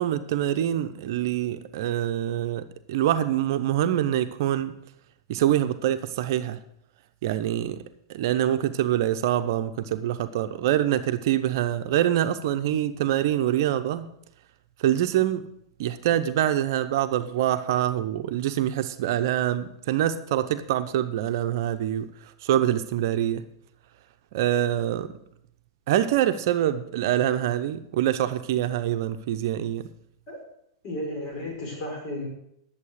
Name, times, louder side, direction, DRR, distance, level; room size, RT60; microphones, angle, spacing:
voice 1, 0.0-4.7 5.3-6.6 7.2-7.8 8.1-14.1 14.8-15.4 15.8-22.1 22.4-23.4 24.3-25.1 25.9-29.9, right 11 dB, 60° right, 0.7 m, -25 dB
voice 2, 30.8-32.3, left 1 dB, 45° left, 5.5 m, -33 dB
11.0 x 7.4 x 6.4 m
hypercardioid pair, 100°, 2 cm